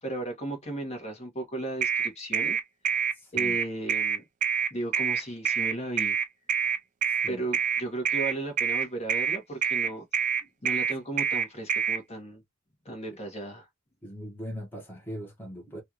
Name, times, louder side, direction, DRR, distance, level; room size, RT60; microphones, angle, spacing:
voice 1, 0.0-2.6 3.3-4.2 4.7-6.2 7.3-10.0 10.6-12.4 12.8-13.7, right 2 dB, 30° left, 1.3 m, -35 dB
sound 1, 1.8-12.0, right 7 dB, 40° right, 0.3 m, -26 dB
voice 2, 3.2-3.6 7.1-7.4 14.0-15.8, equal, 10° left, 1.2 m, -40 dB
3.3 x 2.4 x 2.8 m
head